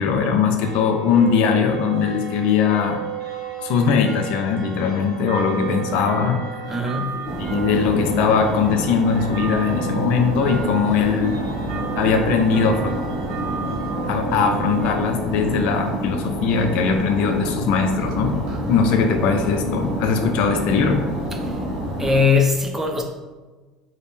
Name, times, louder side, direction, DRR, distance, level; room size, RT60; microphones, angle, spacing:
voice 1, 0.0-3.0 3.6-6.4 7.2-11.3 11.9-13.0 14.1-18.3 18.7-21.0, left 6 dB, 65° left, 5 dB, 0.3 m, -20 dB
sound 1, 0.6-14.9, right 7 dB, 75° right, 0.6 m, -34 dB
voice 2, 6.7-7.4 21.4-21.6 22.0-23.0, left 4 dB, 15° right, 2 dB, 0.5 m, -21 dB
sound 2, 7.2-22.2, right 1 dB, 45° right, 0.9 m, -27 dB
2.6 x 2.0 x 3.4 m, 1.3 s
hypercardioid pair, 85°, 2 cm